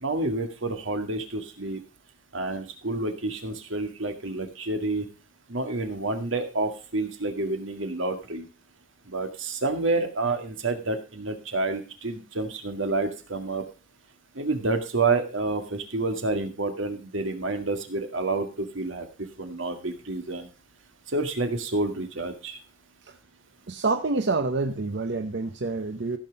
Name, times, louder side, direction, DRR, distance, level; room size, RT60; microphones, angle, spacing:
voice 1, 0.0-1.8 2.3-5.1 5.5-8.5 9.1-13.6 14.4-19.1 19.4-20.5 21.1-22.6, right 2 dB, 85° right, 6 dB, 2.0 m, -29 dB
voice 2, 23.7-26.2, right 3 dB, 65° right, 8 dB, 0.8 m, -27 dB
15.0 x 5.7 x 5.2 m, 0.33 s
head